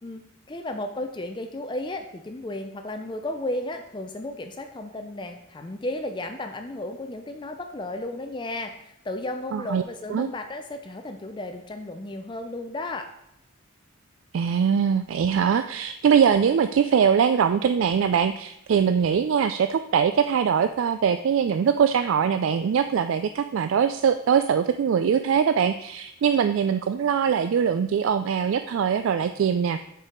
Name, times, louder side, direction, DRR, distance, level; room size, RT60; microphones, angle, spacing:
voice 1, 0.0-13.1, left 1 dB, 25° left, 6 dB, 0.4 m, -34 dB
voice 2, 9.5-9.8 10.1-10.3 14.3-29.8, right 7 dB, 75° right, 10 dB, 0.3 m, -22 dB
7.3 x 4.6 x 5.1 m, 0.78 s
head